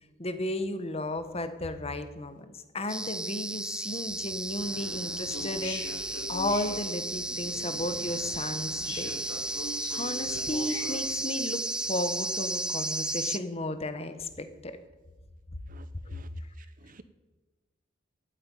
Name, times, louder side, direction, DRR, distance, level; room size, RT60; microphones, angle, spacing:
voice 1, 0.2-5.8 6.3-9.1 9.9-14.8, left 1 dB, 30° left, 1.3 m, -34 dB
sound 1, 2.9-13.4, right 2 dB, 5° right, 0.4 m, -34 dB
sound 2, 4.6-11.1, left 2 dB, 70° left, 2.5 m, -42 dB
voice 2, 15.7-16.3 16.8-17.0, right 3 dB, 45° right, 0.8 m, -51 dB
13.0 x 9.6 x 9.1 m
head